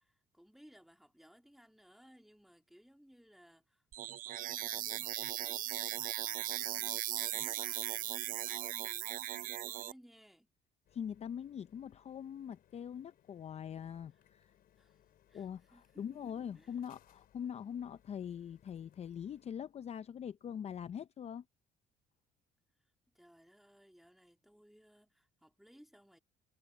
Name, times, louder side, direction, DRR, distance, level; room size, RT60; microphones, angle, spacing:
voice 1, 0.0-10.5 14.4-15.0 15.3-16.8 22.8-26.2, equal, ahead, 2.4 m, -62 dB
sound 1, 3.9-9.9, right 13 dB, 55° right, 0.4 m, -38 dB
sound 2, 10.8-19.5, left 11 dB, 60° left, 4.6 m, -69 dB
voice 2, 10.9-14.5 15.3-21.4, left 8 dB, 40° left, 0.6 m, -43 dB
cardioid pair, 110°, 17 cm